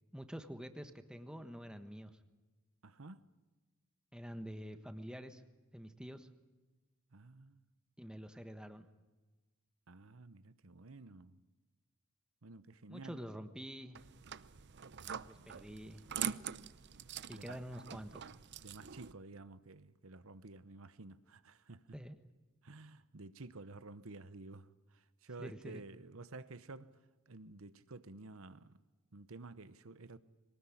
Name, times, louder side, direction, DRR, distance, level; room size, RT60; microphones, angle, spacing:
voice 1, 0.1-2.1 4.1-5.4 5.7-6.3 8.0-8.9 12.9-14.0 15.2-16.0 17.3-18.3 21.9-22.2 25.4-25.8, equal, 5° right, 1.3 m, -47 dB
voice 2, 2.8-3.2 7.1-7.6 9.9-11.4 12.4-13.2 17.3-17.6 18.6-22.0 22.6-27.0 27.3-28.8 29.1-30.2, right 3 dB, 70° right, 1.0 m, -52 dB
sound 1, 13.9-19.1, right 8 dB, 50° right, 0.7 m, -44 dB
23.0 x 19.0 x 9.9 m
head